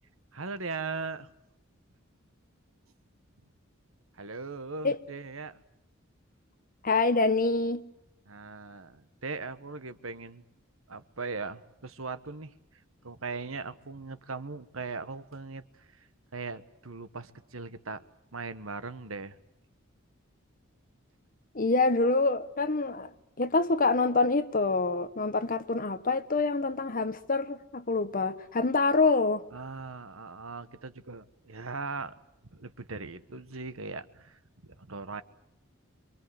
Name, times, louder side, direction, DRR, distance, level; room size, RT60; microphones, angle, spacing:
voice 1, 0.3-1.3 4.1-5.6 8.3-10.4 10.9-19.4 29.5-32.1 32.5-35.2, right 4 dB, 90° right, 1.4 m, -39 dB
voice 2, 6.8-7.8 21.5-23.1 23.4-29.4, left 3 dB, 45° left, 1.2 m, -26 dB
27.0 x 23.0 x 8.0 m
head